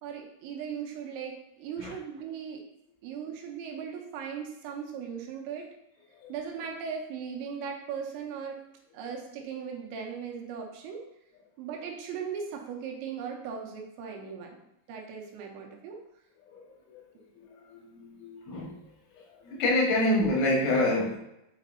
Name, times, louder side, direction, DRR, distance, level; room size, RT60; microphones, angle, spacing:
voice 1, 0.0-2.6 3.0-5.7 6.3-8.6 8.9-11.0 11.6-14.6 14.9-16.0, right 7 dB, 80° right, 1 dB, 3.1 m, -38 dB
voice 2, 16.5-17.0 17.7-18.7 19.2-21.2, left 1 dB, 90° left, -2 dB, 4.2 m, -27 dB
8.2 x 5.2 x 2.7 m, 0.84 s
omnidirectional pair, 5.4 m